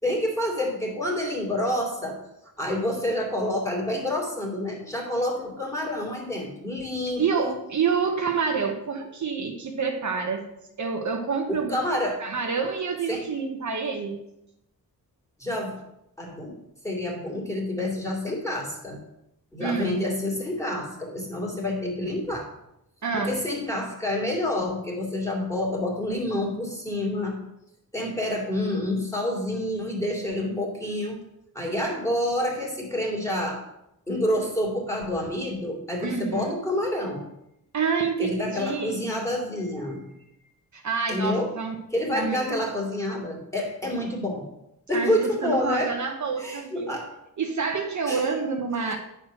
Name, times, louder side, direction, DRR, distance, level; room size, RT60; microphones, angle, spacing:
voice 1, 0.0-2.2 2.6-7.6 11.5-12.2 13.1-13.3 15.4-15.8 16.2-16.6 16.8-19.0 19.5-22.5 23.2-27.4 27.9-31.2 31.5-33.6 34.1-37.2 38.2-40.3 41.1-41.5 41.9-44.5 44.9-45.9 46.4-47.1 48.1-48.2 48.8-49.0, left 1 dB, 10° left, -2 dB, 2.6 m, -28 dB
voice 2, 7.2-10.5 10.8-11.7 12.2-14.2 19.6-20.0 23.0-23.4 36.0-36.5 37.7-39.1 40.7-41.8 42.1-42.6 44.9-47.0 47.4-49.0, right 5 dB, 50° right, 3 dB, 1.0 m, -28 dB
9.6 x 4.5 x 6.3 m, 0.82 s
wide cardioid pair, 125°, 36 cm